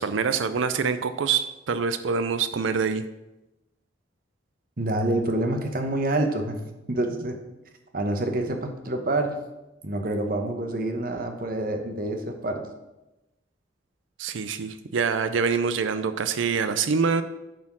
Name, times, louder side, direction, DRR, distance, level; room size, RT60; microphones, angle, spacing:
voice 1, 0.0-3.0 14.2-17.2, right 5 dB, 75° right, 11 dB, 0.5 m, -25 dB
voice 2, 4.8-6.6 6.9-7.4 7.9-9.3 9.8-12.6, right 1 dB, 45° right, 5 dB, 1.0 m, -27 dB
9.2 x 4.3 x 6.0 m, 0.99 s
head